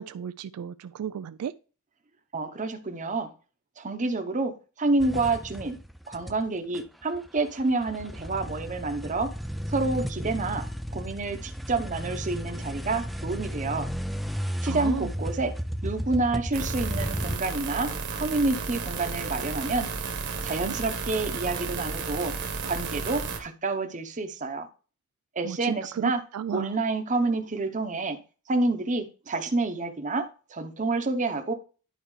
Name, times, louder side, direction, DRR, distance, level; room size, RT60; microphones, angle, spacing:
voice 1, 0.0-1.5 14.7-15.1 20.6-20.7 25.4-26.7, right 8 dB, 85° right, 0.3 m, -34 dB
voice 2, 2.3-3.3 3.8-5.8 6.1-9.3 9.7-10.7 10.9-13.9 14.6-15.5 15.8-17.9 18.1-19.9 20.4-22.3 22.6-24.7 25.4-26.2 26.5-28.2 28.5-30.2 30.5-31.5, right 3 dB, 35° right, 0.9 m, -28 dB
sound 1, 5.0-6.5 6.7-17.4, equal, ahead, 0.3 m, -34 dB
sound 2, 16.5-23.4, right 4 dB, 55° right, 1.2 m, -33 dB
11.0 x 4.5 x 3.2 m
head